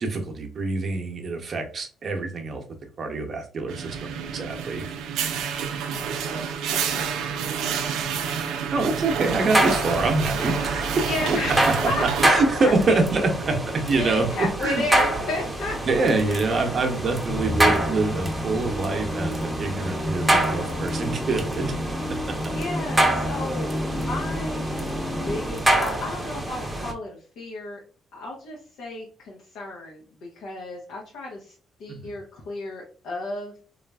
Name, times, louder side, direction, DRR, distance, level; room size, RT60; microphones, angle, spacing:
voice 1, 0.0-2.6 3.0-4.9 8.7-11.0 11.5-14.8 15.9-21.8 22.1-22.3 31.9-32.1, right 3 dB, 50° right, 4 dB, 0.7 m, -25 dB
sound 1, 3.7-12.3, right 7 dB, 90° right, 0.4 m, -28 dB
voice 2, 5.8-8.7 10.9-13.6 13.9-16.7 22.4-24.7 25.3-27.8 28.1-31.5 31.8-33.5, left 2 dB, 80° left, -2 dB, 0.7 m, -33 dB
sound 2, 9.2-26.9, right 1 dB, 10° right, 0.7 m, -27 dB
Musical instrument, 17.3-25.8, left 1 dB, 40° left, 0.6 m, -31 dB
3.1 x 2.4 x 2.2 m, 0.41 s
cardioid pair, 90°, 0 cm